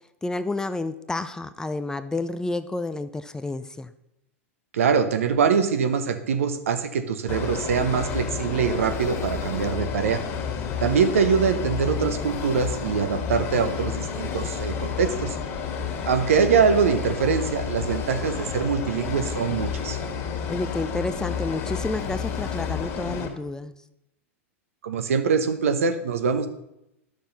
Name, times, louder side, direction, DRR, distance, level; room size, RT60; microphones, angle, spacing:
voice 1, 0.2-3.9 10.5-11.0 20.5-23.7, left 2 dB, 10° left, 12 dB, 0.5 m, -30 dB
voice 2, 4.7-10.2 10.8-15.4 16.0-20.0 24.8-26.5, right 6 dB, 75° right, 9 dB, 0.9 m, -23 dB
sound 1, 7.3-23.3, left 6 dB, 40° left, 2.0 m, -30 dB
11.0 x 6.5 x 4.0 m, 0.86 s
hypercardioid pair, 95°, 7 cm